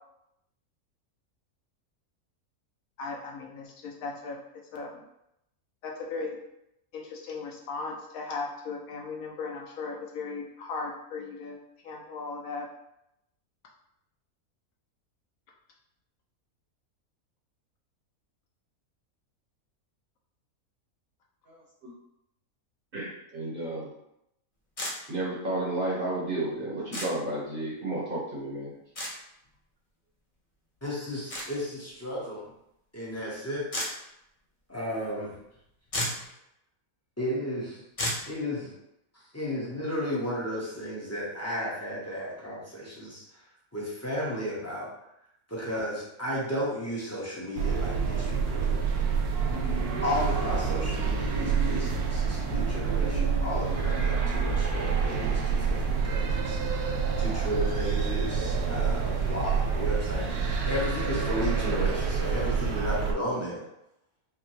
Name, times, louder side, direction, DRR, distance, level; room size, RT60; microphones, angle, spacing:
voice 1, 3.0-4.4 4.7-5.0 5.8-6.4 6.9-11.6 11.8-12.7, left 4 dB, 75° left, 0 dB, 1.0 m, -37 dB
voice 2, 21.5-21.9 22.9-23.9 25.1-28.7, right 1 dB, 40° right, -6 dB, 1.2 m, -32 dB
sound 1, 24.8-24.9 26.9-27.1 29.0-29.1 31.3-31.5 33.7-33.9 35.6-35.7 35.9-36.3 38.0-38.2, left 1 dB, 35° left, 0.6 m, -31 dB
voice 3, 30.8-32.5 32.9-33.6 34.7-35.4 37.2-37.8 38.3-38.7 39.1-43.4 43.7-44.9 45.5-48.9 50.0-60.3 60.7-63.6, equal, 10° left, -6 dB, 0.9 m, -33 dB
sound 2, 47.5-63.1, right 5 dB, 80° right, 1.1 m, -27 dB
5.1 x 2.2 x 3.1 m, 0.82 s
omnidirectional pair, 1.6 m